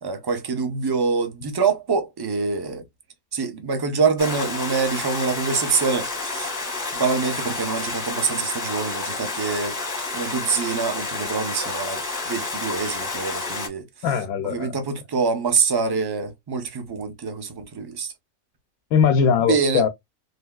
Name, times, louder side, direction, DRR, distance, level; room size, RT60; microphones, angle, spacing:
voice 1, 0.0-2.8 3.3-6.5 6.9-9.7 10.1-13.8 14.4-18.1 19.5-19.8, right 5 dB, 30° right, 0.4 m, -25 dB
Stream, 4.2-13.7, left 3 dB, 20° left, 0.7 m, -30 dB
voice 2, 14.0-14.8 18.9-19.9, left 7 dB, 90° left, 1.0 m, -20 dB
3.4 x 2.8 x 2.3 m
omnidirectional pair, 1.4 m